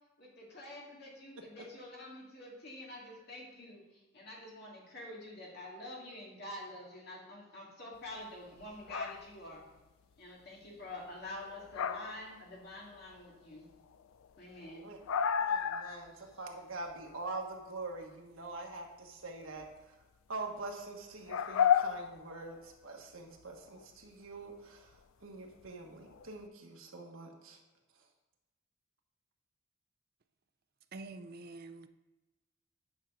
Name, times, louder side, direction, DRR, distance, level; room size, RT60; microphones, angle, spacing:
voice 1, 0.2-9.6 10.2-13.7 14.4-14.9, left 1 dB, 50° left, -4 dB, 2.3 m, -47 dB
sound 1, 8.6-9.3 11.4-12.3 12.6-13.0 13.5-13.6 13.9-14.0 14.2-14.3 14.6-16.1 16.3-16.4 16.9-17.2 19.6-19.7 21.3-22.7 23.4-23.8 25.6-25.7 26.1-26.3, left 8 dB, 80° left, 0.4 m, -32 dB
voice 2, 15.4-19.9 20.3-24.9 25.2-27.6, right 3 dB, 80° right, 1 dB, 1.4 m, -44 dB
voice 3, 30.9-31.9, right 3 dB, 45° right, 10 dB, 0.4 m, -46 dB
9.4 x 5.6 x 3.8 m, 1.1 s
head